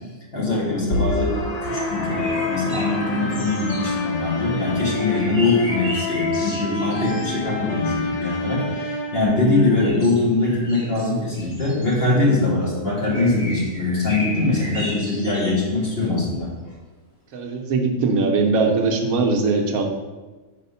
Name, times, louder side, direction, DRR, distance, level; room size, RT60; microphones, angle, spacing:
voice 1, 0.3-16.5, left 2 dB, 40° left, -6 dB, 1.8 m, -22 dB
sound 1, 0.9-9.9, left 2 dB, 85° left, 0.3 m, -27 dB
sound 2, 2.0-4.4 4.9-7.9 9.3-11.9 13.1-15.6 16.0-16.1, equal, 20° left, 2.1 m, -35 dB
voice 2, 17.3-19.8, right 3 dB, 75° right, 3 dB, 1.2 m, -20 dB
4.9 x 4.2 x 5.5 m, 1.3 s
omnidirectional pair, 1.6 m